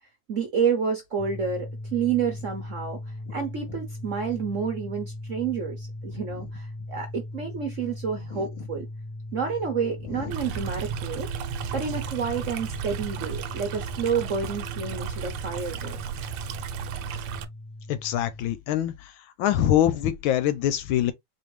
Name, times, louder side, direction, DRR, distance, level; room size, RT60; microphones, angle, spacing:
voice 1, 0.3-3.0 3.3-8.9 9.3-11.3 11.7-16.0, right 6 dB, 50° right, 0.9 m, -29 dB
sound 1, 1.2-18.5, left 1 dB, 60° left, 1.0 m, -39 dB
Stream, 10.3-17.4, right 7 dB, 85° right, 1.5 m, -34 dB
voice 2, 17.9-19.1 19.4-21.1, left 11 dB, 75° left, 1.3 m, -24 dB
4.3 x 2.8 x 3.1 m
omnidirectional pair, 2.4 m